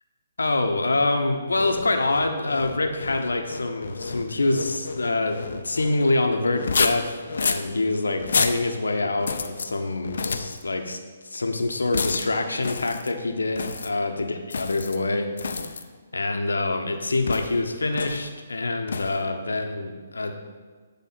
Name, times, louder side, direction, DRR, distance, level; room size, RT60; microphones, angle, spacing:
voice 1, 0.4-11.0 11.2-15.7 16.1-20.3, left 2 dB, 90° left, 5 dB, 0.9 m, -26 dB
sound 1, 1.5-6.0 6.5-7.7 8.2-8.6 9.2-9.7 10.0-10.6 11.9-12.3 12.6-13.1 13.5-13.9 14.5-15.0 15.4-15.8 17.3-17.6 17.9-18.3 18.9-19.2, left 5 dB, 70° left, 0.6 m, -29 dB
9.3 x 3.7 x 5.6 m, 1.5 s
hypercardioid pair, 145°, 0 cm